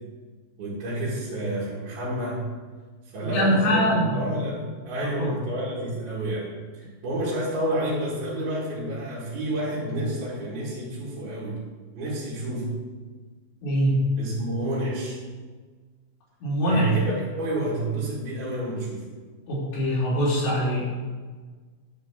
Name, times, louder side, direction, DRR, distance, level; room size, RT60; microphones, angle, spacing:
voice 1, 0.6-2.5 3.1-11.6 11.9-12.7 14.2-15.2 16.7-19.0, right 1 dB, 60° right, -9 dB, 3.8 m, -29 dB
voice 2, 3.2-4.2 5.0-5.4 13.6-14.0 16.4-16.9 19.5-20.8, equal, 75° left, -7 dB, 5.8 m, -23 dB
11.5 x 4.6 x 7.4 m, 1.4 s
omnidirectional pair, 5.2 m